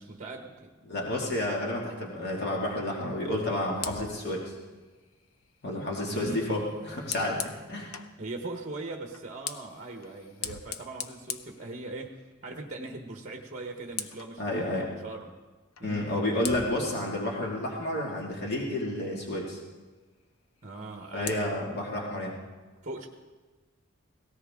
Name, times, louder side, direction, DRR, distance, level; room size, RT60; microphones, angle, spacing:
voice 1, 0.0-0.7 6.0-6.6 8.2-12.1 12.4-15.4 15.8-16.2 20.6-21.6 22.8-23.1, right 2 dB, 35° right, 3 dB, 1.2 m, -40 dB
voice 2, 0.9-4.6 5.6-8.0 14.4-14.9 15.8-19.6 21.1-22.4, left 1 dB, 55° left, -2 dB, 2.3 m, -31 dB
Fire, 3.7-8.2 9.1-12.3 12.7-13.0 13.3-14.4 15.8-15.9 16.4-18.7 20.6-21.4, left 7 dB, 85° left, 0.8 m, -42 dB
18.0 x 17.5 x 3.7 m, 1.3 s
head